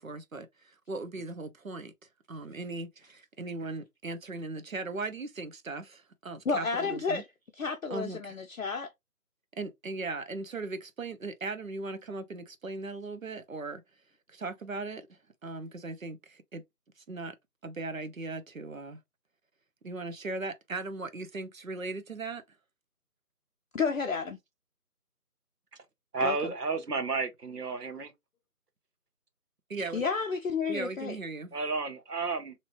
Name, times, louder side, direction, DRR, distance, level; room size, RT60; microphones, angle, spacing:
voice 1, 0.0-1.9 2.3-7.2 7.9-8.2 9.6-13.8 14.3-15.1 15.4-16.6 17.1-17.3 17.6-19.0 19.8-22.4 29.7-30.0 30.7-31.5, right 3 dB, 60° right, 0.8 m, -38 dB
voice 2, 6.5-7.3 7.6-8.9 23.7-24.4 26.2-26.5 29.9-31.2, left 5 dB, 60° left, 0.5 m, -31 dB
voice 3, 26.1-28.1 31.5-32.5, right 4 dB, 80° right, 1.1 m, -32 dB
3.0 x 2.9 x 2.6 m
figure-of-eight pair, 160°, 46 cm